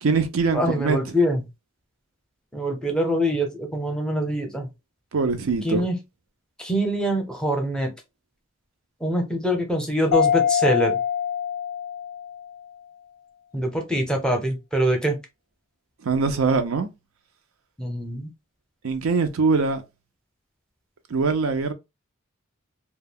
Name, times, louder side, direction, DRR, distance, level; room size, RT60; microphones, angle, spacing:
voice 1, 0.0-1.0 5.1-5.9 16.1-16.9 18.8-19.8 21.1-21.7, right 4 dB, 90° right, 0.5 m, -22 dB
voice 2, 0.5-1.4 2.5-4.7 5.6-5.9 6.6-7.9 9.0-11.0 13.5-15.2 17.8-18.3, equal, 5° left, 0.6 m, -24 dB
Mallet percussion, 10.1-12.6, left 8 dB, 75° left, 0.4 m, -24 dB
2.3 x 2.0 x 3.4 m
head